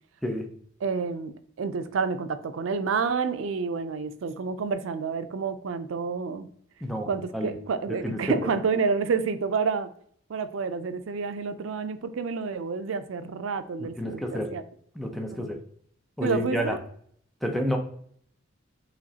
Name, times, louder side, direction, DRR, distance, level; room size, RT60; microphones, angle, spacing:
voice 1, 0.8-1.3 1.6-6.5 7.1-9.9 10.3-14.6 15.3-15.6 16.2-16.8, right 5 dB, 85° right, 11 dB, 0.4 m, -29 dB
voice 2, 7.9-8.5 14.0-14.5 15.0-15.6 16.2-16.8 17.4-17.8, equal, ahead, 2 dB, 0.5 m, -29 dB
5.0 x 3.0 x 2.7 m, 0.63 s
head